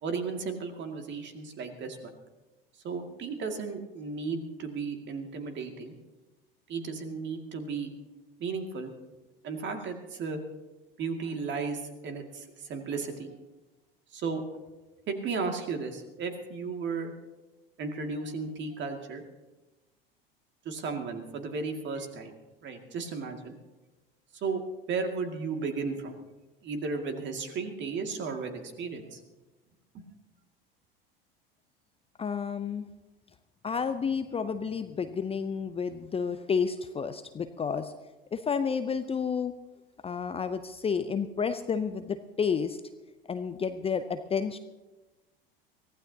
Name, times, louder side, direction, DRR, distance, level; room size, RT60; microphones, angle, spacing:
voice 1, 0.0-2.1 2.8-5.9 6.7-7.9 8.4-8.9 9.4-10.4 11.0-13.3 14.1-14.4 15.1-17.1 17.8-19.2 20.6-22.3 22.6-23.5 24.3-24.6 24.9-26.2 26.6-29.2 29.9-30.0, right 4 dB, 40° right, 5 dB, 2.3 m, -34 dB
voice 2, 32.2-32.9 33.6-37.9 38.3-39.5 40.0-42.8 43.3-44.6, left 6 dB, 20° left, 10 dB, 0.7 m, -30 dB
24.0 x 16.0 x 2.9 m, 1.1 s
figure-of-eight pair, 75°, 29 cm